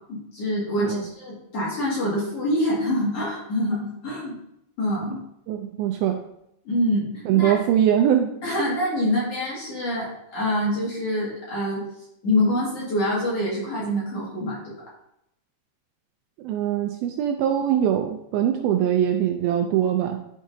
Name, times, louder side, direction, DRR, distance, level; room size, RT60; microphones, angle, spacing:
voice 1, 0.1-4.4 4.8-5.2 6.6-7.6 8.4-11.9 12.2-14.7, left 1 dB, 45° left, -6 dB, 2.7 m, -25 dB
voice 2, 5.5-6.2 7.3-8.3 16.4-20.2, right 10 dB, 80° right, 4 dB, 2.2 m, -22 dB
11.0 x 4.8 x 2.7 m, 0.79 s
omnidirectional pair, 4.6 m